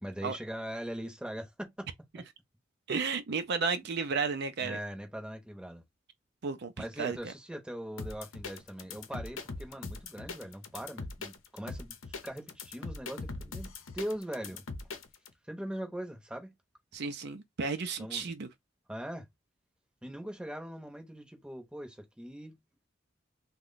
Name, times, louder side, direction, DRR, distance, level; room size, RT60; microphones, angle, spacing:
voice 1, 0.0-1.9 2.1-2.2 4.6-5.8 6.8-14.6 15.5-16.5 18.0-18.3 18.9-19.3 20.0-22.6, equal, 5° right, 0.8 m, -41 dB
voice 2, 2.9-4.8 6.4-6.7 7.0-7.2 16.9-18.5, right 5 dB, 60° right, 0.5 m, -33 dB
sound 1, 8.0-15.3, left 3 dB, 80° left, 0.7 m, -41 dB
3.0 x 2.2 x 3.8 m
head